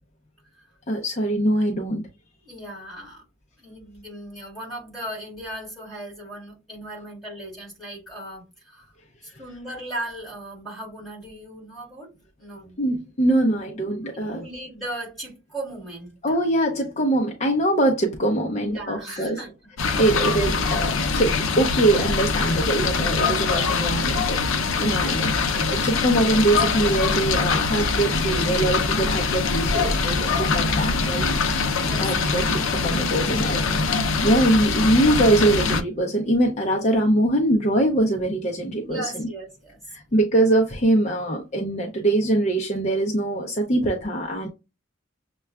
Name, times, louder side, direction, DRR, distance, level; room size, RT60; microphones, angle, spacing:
voice 1, 0.9-2.1 12.8-14.4 16.2-19.4 20.0-24.4 24.8-25.3 25.7-31.3 32.0-33.6 34.2-39.3 39.9-44.5, right 1 dB, 35° left, 0.6 m, -23 dB
voice 2, 2.4-3.2 3.6-8.9 9.2-12.1 12.4-12.8 14.3-16.4 18.6-19.5 19.8-20.3 24.7-25.1 31.7-32.3 38.8-39.8, right 1 dB, ahead, 2.3 m, -37 dB
sound 1, 19.8-35.8, left 4 dB, 85° left, 0.6 m, -23 dB
6.5 x 2.2 x 2.2 m
head